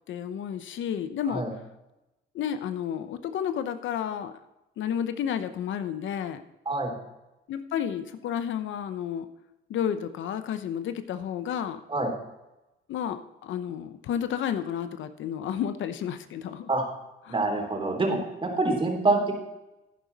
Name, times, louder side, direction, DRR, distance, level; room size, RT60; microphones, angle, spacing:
voice 1, 0.1-1.4 2.3-4.4 4.8-6.4 7.5-9.3 9.7-11.8 12.9-16.7 17.2-17.4, left 9 dB, 75° left, 10 dB, 0.8 m, -31 dB
voice 2, 17.3-19.3, right 2 dB, 25° right, 2 dB, 3.2 m, -26 dB
11.0 x 10.0 x 4.0 m, 0.97 s
cardioid pair, 90°, 20 cm